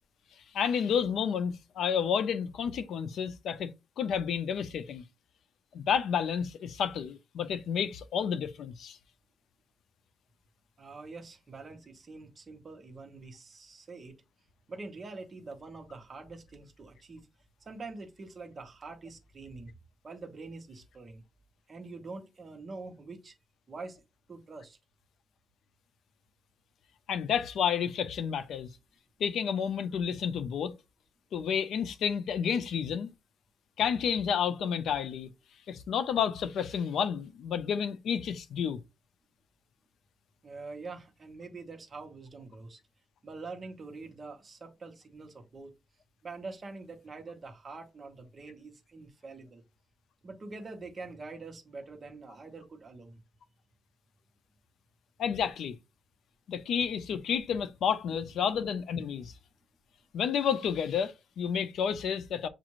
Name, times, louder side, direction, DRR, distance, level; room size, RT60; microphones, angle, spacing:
voice 1, 0.5-5.0 5.7-9.0 27.1-28.7 29.2-30.7 31.3-33.1 33.8-35.3 35.7-38.8 55.2-55.8 56.5-59.3 60.1-62.5, left 7 dB, 75° left, 0.5 m, -30 dB
voice 2, 10.8-14.1 14.7-17.3 17.7-19.8 20.0-21.2 21.7-23.3 23.7-24.0 24.3-24.8 40.4-42.8 43.2-45.7 46.2-49.6 50.2-53.2, right 3 dB, 30° right, 0.9 m, -45 dB
7.2 x 2.5 x 3.0 m
wide cardioid pair, 165°, 0 cm